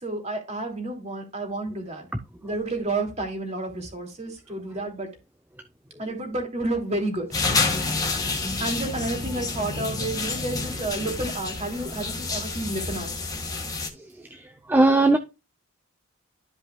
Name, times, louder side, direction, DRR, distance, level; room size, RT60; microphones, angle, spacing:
voice 1, 0.0-2.1 2.4-5.1 6.0-7.3 8.6-13.1, right 2 dB, 30° right, 2.8 m, -30 dB
sound 1, 7.3-13.9, left 3 dB, 15° left, 1.7 m, -29 dB
voice 2, 14.0-15.2, right 2 dB, 10° right, 0.5 m, -21 dB
13.0 x 5.4 x 2.3 m
head